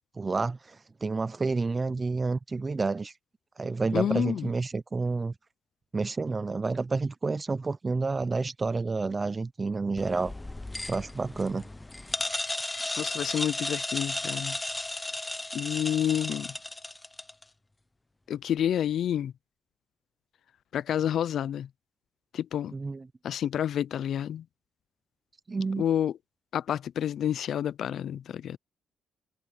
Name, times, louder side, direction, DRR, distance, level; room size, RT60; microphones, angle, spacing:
voice 1, 0.2-3.1 3.6-5.3 5.9-10.3 10.9-11.7 22.7-23.1 25.5-25.8, right 3 dB, 25° right, 0.6 m, -29 dB
voice 2, 3.9-4.5 13.0-14.6 15.5-16.5 18.3-19.3 20.7-21.7 22.3-22.7 23.2-24.4 25.8-26.1 26.5-28.6, left 10 dB, 65° left, 0.4 m, -29 dB
sound 1, 10.0-17.4, left 2 dB, 15° left, 0.7 m, -34 dB
cardioid pair, 90°, 0 cm